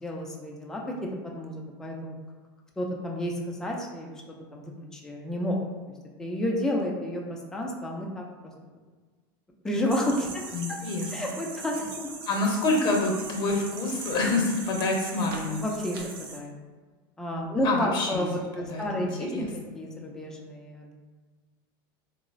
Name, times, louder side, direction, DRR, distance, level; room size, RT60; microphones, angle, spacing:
voice 1, 0.0-2.1 2.8-4.1 4.5-4.6 4.9-5.6 6.2-8.3 9.6-10.4 10.7-10.8 11.1-12.1 15.6-16.5 17.2-19.5 19.7-20.9, equal, 5° left, -1 dB, 0.4 m, -31 dB
sound 1, 9.9-16.4, right 4 dB, 80° right, 0.6 m, -40 dB
voice 2, 10.5-11.1 12.3-15.6 17.6-18.3 18.6-19.5, left 2 dB, 40° left, 0 dB, 0.8 m, -27 dB
3.6 x 2.0 x 2.4 m, 1.4 s
supercardioid pair, 120°, 12 cm